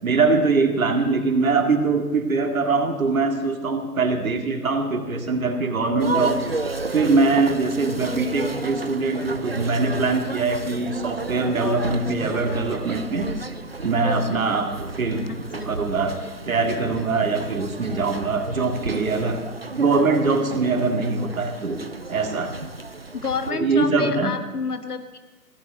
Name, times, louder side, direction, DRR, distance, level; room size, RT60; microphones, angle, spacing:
voice 1, 0.0-6.5 6.9-13.3 13.8-16.2 16.5-19.4 19.8-21.8 22.1-22.5 23.5-24.3, right 3 dB, 55° right, 5 dB, 2.2 m, -22 dB
sound 1, 6.0-23.5, right 3 dB, 40° right, 0.5 m, -32 dB
voice 2, 15.3-15.7 23.1-25.2, left 5 dB, 65° left, 8 dB, 1.7 m, -29 dB
16.0 x 9.8 x 8.1 m, 1.2 s
figure-of-eight pair, 155°, 49 cm